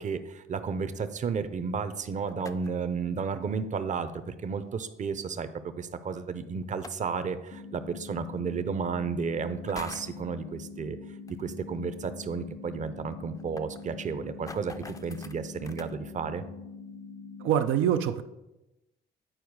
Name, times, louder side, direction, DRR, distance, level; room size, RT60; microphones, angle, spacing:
voice 1, 0.0-5.5 5.8-11.0 11.4-16.4, right 5 dB, 40° right, 11 dB, 0.6 m, -32 dB
sound 1, 2.3-2.9 4.5-4.6 6.6-7.2 8.4-8.5 9.5-10.2 11.3-11.4 11.7-11.8 12.2-12.3 12.5-12.6 13.1-15.9, left 3 dB, 15° left, 0.4 m, -46 dB
sound 2, 7.5-17.5, left 4 dB, 50° left, 0.7 m, -44 dB
voice 2, 17.4-18.2, right 9 dB, 85° right, 8 dB, 0.4 m, -24 dB
8.9 x 4.5 x 4.7 m, 0.97 s
cardioid pair, 90°, 20 cm